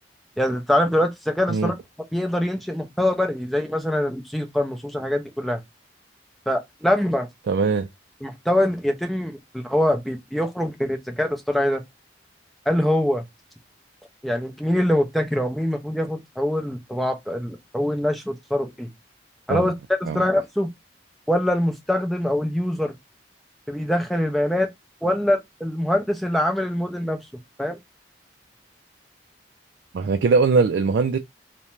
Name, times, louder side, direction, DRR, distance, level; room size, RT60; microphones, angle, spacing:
voice 1, 0.4-1.7 2.1-5.6 6.5-7.3 8.2-11.8 12.7-13.2 14.2-18.9 19.5-19.7 20.1-20.7 21.3-22.9 23.7-24.7 25.0-27.2 27.6-27.8, left 1 dB, ahead, 0.5 m, -23 dB
voice 2, 7.5-7.9 19.5-19.7 20.1-20.2 29.9-31.2, right 4 dB, 70° right, 0.3 m, -21 dB
2.5 x 2.1 x 2.9 m
head